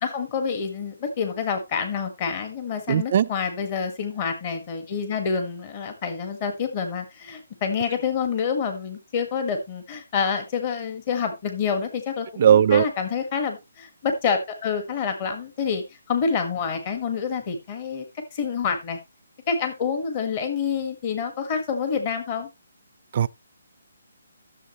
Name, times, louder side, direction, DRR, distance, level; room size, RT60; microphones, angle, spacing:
voice 1, 0.0-18.0 18.3-19.0 19.5-22.5, left 6 dB, 25° left, 1.6 m, -27 dB
voice 2, 2.9-3.3 12.4-12.9 23.1-23.3, right 9 dB, 35° right, 0.4 m, -17 dB
14.0 x 7.1 x 3.0 m
hypercardioid pair, 170°, 0 cm